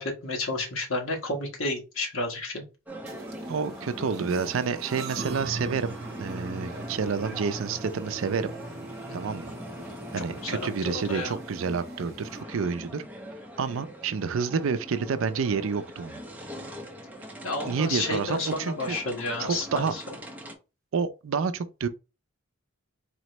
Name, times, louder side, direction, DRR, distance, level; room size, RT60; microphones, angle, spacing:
voice 1, 0.0-2.6 9.3-9.4 10.2-11.4 17.4-20.0, left 2 dB, 70° left, 1.3 m, -31 dB
sound 1, 2.9-20.5, equal, 10° right, 0.7 m, -41 dB
sound 2, 3.1-12.4, right 3 dB, 50° right, 0.9 m, -41 dB
voice 2, 3.5-8.5 9.1-9.5 10.1-13.0 13.6-16.2 17.6-19.0 19.4-19.9 20.9-21.9, right 5 dB, 70° right, 0.4 m, -29 dB
4.1 x 3.1 x 3.0 m
head